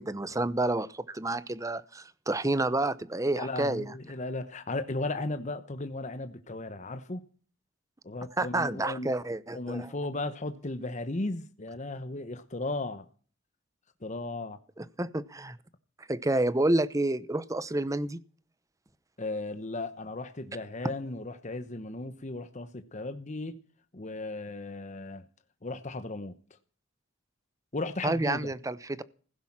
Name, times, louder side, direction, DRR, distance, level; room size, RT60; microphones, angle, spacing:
voice 1, 0.0-3.9 8.4-9.9 14.8-15.6 16.1-18.2 28.0-29.0, right 2 dB, 15° right, 0.8 m, -29 dB
voice 2, 3.3-7.2 8.0-9.1 9.5-13.0 14.0-14.6 19.2-23.6 23.9-25.2 25.6-26.3 27.7-28.5, left 2 dB, 35° left, 1.0 m, -35 dB
16.0 x 10.5 x 7.4 m
head